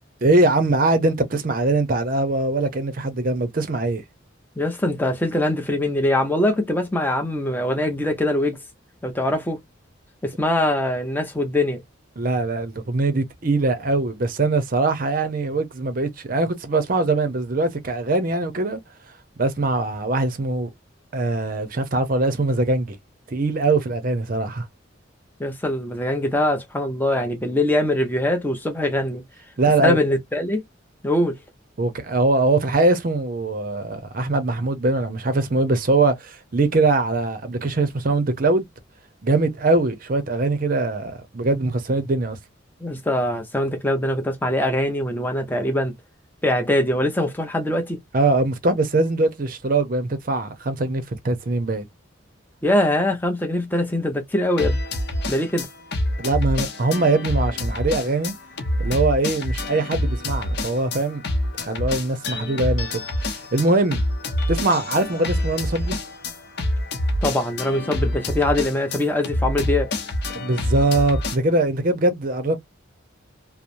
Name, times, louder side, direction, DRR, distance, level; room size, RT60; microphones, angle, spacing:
voice 1, 0.2-4.0 12.2-18.8 19.4-20.7 21.1-23.0 23.3-24.6 29.6-30.0 31.8-38.6 39.2-42.4 48.1-51.9 56.2-58.3 58.8-61.2 61.6-64.0 64.5-66.0 70.3-72.6, right 2 dB, 45° right, 0.6 m, -22 dB
voice 2, 4.6-8.6 9.0-9.6 10.2-11.8 25.4-29.2 29.8-30.6 31.0-31.4 42.8-46.0 46.4-48.0 52.6-54.8 55.3-55.7 67.2-69.9, left 1 dB, 10° left, 0.6 m, -22 dB
sound 1, 54.6-71.4, left 1 dB, 55° left, 0.7 m, -26 dB
3.0 x 2.0 x 2.5 m
head